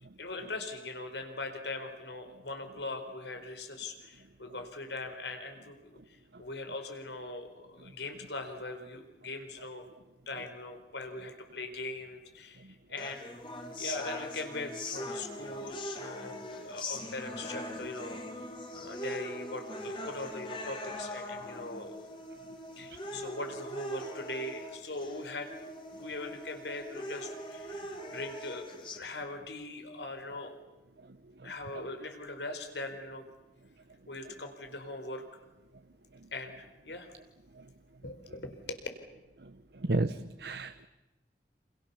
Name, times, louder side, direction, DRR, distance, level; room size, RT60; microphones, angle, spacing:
voice 1, 0.2-6.0 6.4-9.9 10.3-12.6 12.9-13.3 13.8-18.2 18.7-22.1 22.8-25.5 26.0-30.5 31.4-33.2 34.1-35.2 36.3-37.1 38.0-38.8, left 2 dB, 85° left, 7 dB, 4.4 m, -41 dB
sound 1, 13.0-29.0, left 1 dB, 30° left, 3.1 m, -41 dB
voice 2, 39.8-40.9, right 2 dB, 70° right, 11 dB, 0.9 m, -32 dB
29.0 x 28.0 x 7.1 m, 1.0 s
head